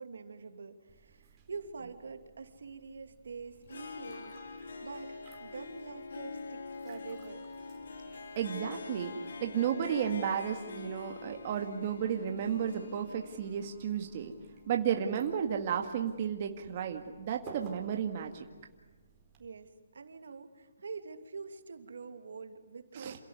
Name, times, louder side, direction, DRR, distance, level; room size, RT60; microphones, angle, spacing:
voice 1, 0.0-4.5 4.8-7.5 19.4-23.2, right 5 dB, 75° right, 7 dB, 2.7 m, -46 dB
sound 1, 0.9-19.4, right 4 dB, 20° right, 4.6 m, -58 dB
Harp, 3.6-15.5, left 4 dB, 70° left, 3.5 m, -45 dB
voice 2, 8.4-9.1 9.4-14.3 14.7-18.4 22.9-23.2, right 8 dB, 40° right, 4 dB, 1.9 m, -33 dB
28.0 x 17.0 x 9.6 m, 1.3 s
hypercardioid pair, 160°, 0 cm